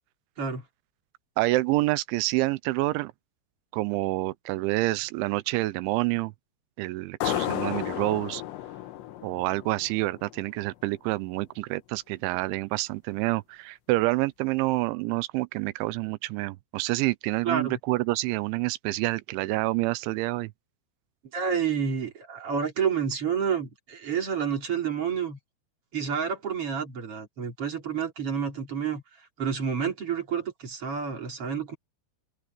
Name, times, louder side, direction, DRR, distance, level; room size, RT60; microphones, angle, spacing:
voice 1, 1.4-3.1 3.7-6.3 6.8-8.4 9.2-20.5, right 20 dB, 90° right, 3.1 m, -28 dB
sound 1, 7.2-10.5, left 14 dB, 75° left, 3.5 m, -33 dB
voice 2, 17.4-17.8 21.3-25.4 25.9-29.0 29.4-31.8, right 7 dB, 30° right, 4.3 m, -29 dB
open air
omnidirectional pair, 5.3 m